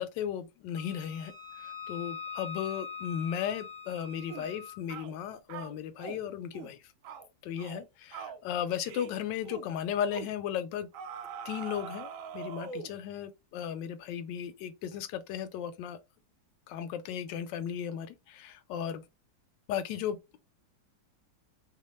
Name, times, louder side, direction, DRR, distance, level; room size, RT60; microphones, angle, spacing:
voice 1, 0.0-1.3 1.6-6.8 7.4-10.9 11.4-16.0 16.7-19.0 19.7-20.4, left 9 dB, 85° left, 1.2 m, -35 dB
Wind instrument woodwind instrument, 0.8-4.8, left 6 dB, 45° right, 0.6 m, -43 dB
sound 1, 4.3-4.5 4.9-5.1 5.5-6.2 6.5-6.8 7.0-7.3 7.6-7.8 8.1-8.4 8.8-9.1 9.4-9.7 10.1-10.3 10.9-13.0, right 7 dB, 75° right, 0.7 m, -42 dB
2.9 x 2.1 x 3.0 m
omnidirectional pair, 1.9 m